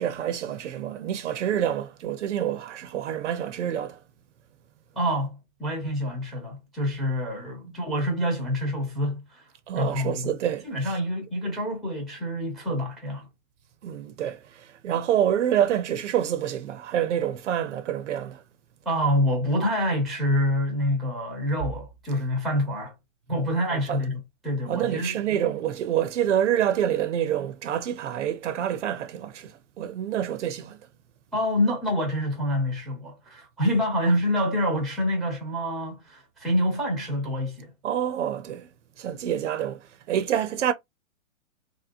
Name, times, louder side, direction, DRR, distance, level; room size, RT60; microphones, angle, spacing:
voice 1, 0.0-4.0 7.6-7.7 9.7-11.0 13.8-18.4 23.7-24.0 24.7-30.8 37.8-38.7 39.0-40.7, right 10 dB, 60° right, 0.6 m, -27 dB
voice 2, 4.9-9.4 9.8-10.3 10.6-13.3 18.9-22.9 23.3-25.1 31.3-37.7, equal, ahead, 0.6 m, -27 dB
3.1 x 2.8 x 2.5 m
hypercardioid pair, 150°, 41 cm